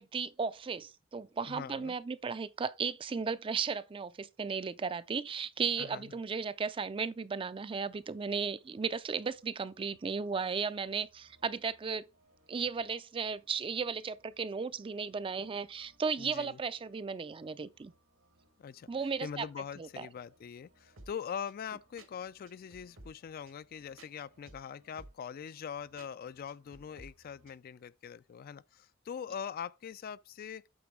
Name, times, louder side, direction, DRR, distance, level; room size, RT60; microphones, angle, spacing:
voice 1, 0.0-12.1 12.5-17.9 18.9-19.4 19.8-20.1, right 5 dB, 25° right, 0.4 m, -35 dB
voice 2, 1.5-2.0 5.8-6.2 16.2-16.6 18.6-18.9 19.2-30.7, left 7 dB, 45° left, 0.3 m, -42 dB
sound 1, 7.9-27.6, right 2 dB, 80° right, 1.8 m, -62 dB
8.6 x 3.9 x 4.5 m
head